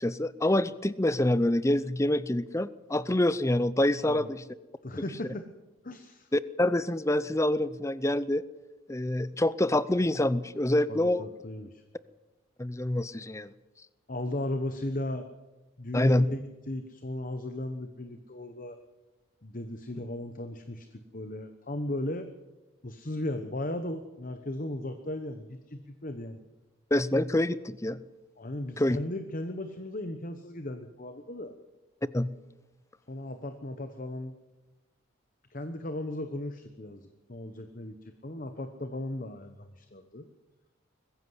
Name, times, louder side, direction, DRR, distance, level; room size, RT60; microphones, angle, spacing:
voice 1, 0.0-4.4 6.3-8.4 8.9-11.2 12.6-13.5 15.9-16.3 26.9-28.0 28.8-29.0 32.1-32.3, left 1 dB, 15° left, 16 dB, 0.6 m, -26 dB
voice 2, 4.8-5.4 5.8-6.3 10.9-11.8 14.1-15.2 15.8-18.8 19.4-22.3 22.8-26.4 28.4-31.5 33.1-34.3 35.5-40.3, left 1 dB, 40° left, 8 dB, 1.1 m, -36 dB
21.5 x 15.0 x 8.0 m, 1.1 s
head